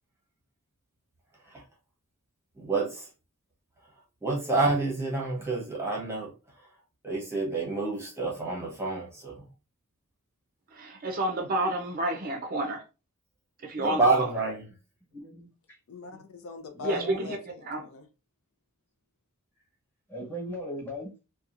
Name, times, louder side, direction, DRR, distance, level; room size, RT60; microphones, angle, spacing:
voice 1, 2.6-3.1 4.2-6.3 7.0-9.4 13.8-14.6, right 3 dB, 10° right, 0.8 m, -28 dB
voice 2, 10.7-12.8 13.6-14.3 16.8-17.4 17.7-17.8, right 1 dB, 40° right, 0.5 m, -30 dB
voice 3, 15.1-15.8 16.8-17.2 20.1-21.1, equal, 10° left, 1.1 m, -38 dB
voice 4, 15.9-18.1, left 4 dB, 65° left, 0.5 m, -43 dB
2.8 x 2.3 x 2.5 m
head